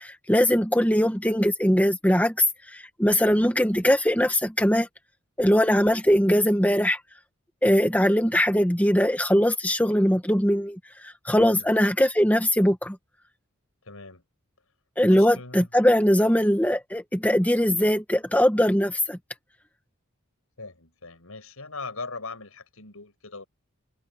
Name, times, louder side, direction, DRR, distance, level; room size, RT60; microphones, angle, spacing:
voice 1, 0.0-4.9 5.4-7.0 7.6-13.0 15.0-19.2, equal, 5° left, 1.5 m, -21 dB
voice 2, 11.3-11.7 13.8-14.2 15.1-15.7 20.6-23.5, left 3 dB, 85° left, 6.1 m, -40 dB
head